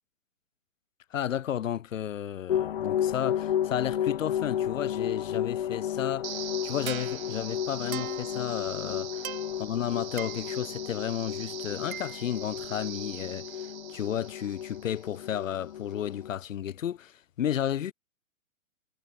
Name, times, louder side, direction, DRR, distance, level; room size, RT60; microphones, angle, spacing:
voice 1, 1.1-17.9, left 10 dB, 70° left, 1.2 m, -33 dB
sound 1, 2.5-16.3, left 10 dB, 45° left, 0.7 m, -33 dB
sound 2, 6.2-15.3, right 10 dB, 80° right, 1.0 m, -41 dB
hypercardioid pair, 175°, 41 cm